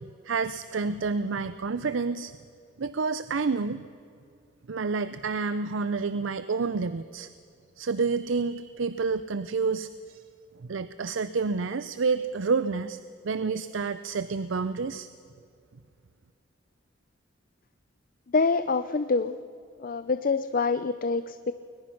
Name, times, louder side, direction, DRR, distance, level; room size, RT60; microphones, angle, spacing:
voice 1, 0.2-2.3 2.8-3.8 4.7-7.3 7.8-10.2 10.6-13.0 13.2-15.1, right 4 dB, 90° right, 13 dB, 0.6 m, -29 dB
voice 2, 18.3-19.4 19.8-21.5, left 4 dB, 45° left, 12 dB, 0.5 m, -26 dB
21.5 x 20.5 x 5.9 m, 2.4 s
head